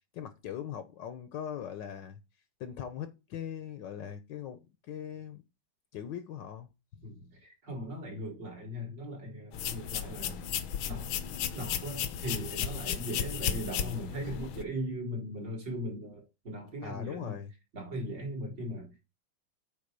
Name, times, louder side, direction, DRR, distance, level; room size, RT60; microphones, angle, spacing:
voice 1, 0.1-2.2 2.6-5.4 5.9-7.0 16.8-17.5, left 9 dB, 65° left, 1.4 m, -40 dB
voice 2, 7.0-10.4 10.9-11.2 11.5-17.4 17.7-18.9, equal, 60° right, 4.2 m, -39 dB
sound 1, 9.5-14.6, left 9 dB, 80° left, 1.6 m, -34 dB
8.7 x 4.0 x 5.2 m
omnidirectional pair, 2.2 m